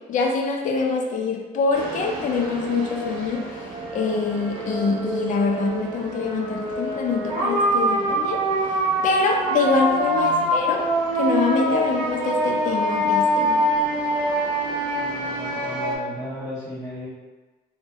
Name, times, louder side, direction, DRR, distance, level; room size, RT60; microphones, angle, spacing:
voice 1, 0.1-3.4 3.9-8.4 9.0-10.8 11.2-13.6, left 4 dB, 50° left, 1 dB, 0.5 m, -24 dB
sound 1, 1.7-16.0, right 1 dB, 30° right, 0.7 m, -25 dB
voice 2, 9.8-10.5 14.9-17.1, left 1 dB, 20° left, -10 dB, 1.3 m, -36 dB
3.3 x 2.1 x 2.7 m, 1.2 s
cardioid pair, 110°, 17 cm